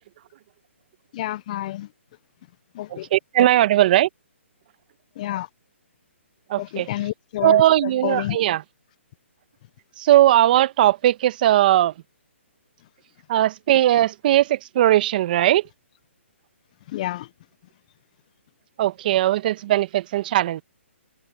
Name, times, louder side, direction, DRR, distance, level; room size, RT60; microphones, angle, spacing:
voice 1, 1.1-1.9 2.8-3.1 5.2-5.5 6.6-7.6 8.0-8.4 16.9-17.3, left 14 dB, 35° left, 0.4 m, -29 dB
voice 2, 2.9-4.1 6.5-6.9 7.4-8.6 10.0-11.9 13.3-15.6 18.8-20.6, right 13 dB, 40° right, 1.2 m, -19 dB
hypercardioid pair, 150°, 7 cm